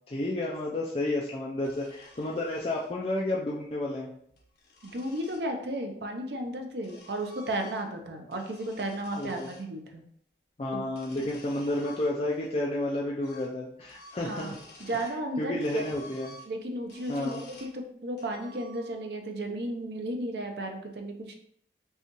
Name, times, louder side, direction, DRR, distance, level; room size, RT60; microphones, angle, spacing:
voice 1, 0.1-4.1 9.2-9.5 10.6-14.6 14.9-15.0 15.4-16.4 17.1-17.4, left 1 dB, 35° left, -4 dB, 0.4 m, -31 dB
sound 1, 1.6-2.9 4.1-5.5 6.4-8.0 8.3-9.7 10.8-12.5 12.8-12.9 13.2-13.6 13.8-15.2 15.6-17.8 18.2-19.1, left 2 dB, 70° left, 1.0 m, -52 dB
voice 2, 4.8-10.0 10.7-10.8 11.2-11.3 14.2-14.5 14.8-15.9 16.5-21.3, right 1 dB, 75° right, 4 dB, 0.6 m, -34 dB
5.4 x 2.4 x 3.0 m, 0.70 s
head